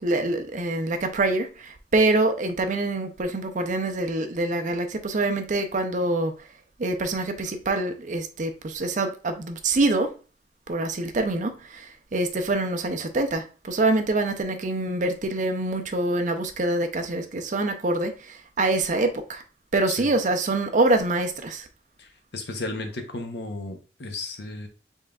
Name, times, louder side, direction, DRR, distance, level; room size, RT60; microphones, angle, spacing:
voice 1, 0.0-6.3 6.8-10.1 10.7-11.9 12.1-19.4 19.7-21.7, right 2 dB, 40° right, 0.5 m, -25 dB
voice 2, 22.0-24.7, left 2 dB, 60° left, 0.8 m, -34 dB
5.4 x 3.6 x 2.3 m
head